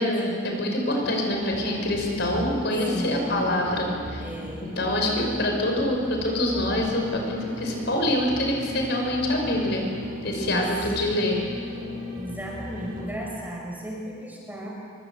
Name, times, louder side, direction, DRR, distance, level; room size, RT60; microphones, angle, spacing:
voice 1, 0.0-4.2 4.8-9.9 10.2-11.4, left 1 dB, 55° left, 1 dB, 5.4 m, -25 dB
sound 1, 1.0-13.0, left 1 dB, 45° right, 7.1 m, -37 dB
voice 2, 2.9-3.5 4.2-4.8 6.2-6.3 10.3-10.6 12.1-14.7, right 1 dB, 10° right, -2 dB, 5.1 m, -35 dB
25.5 x 24.0 x 8.1 m, 2.2 s
head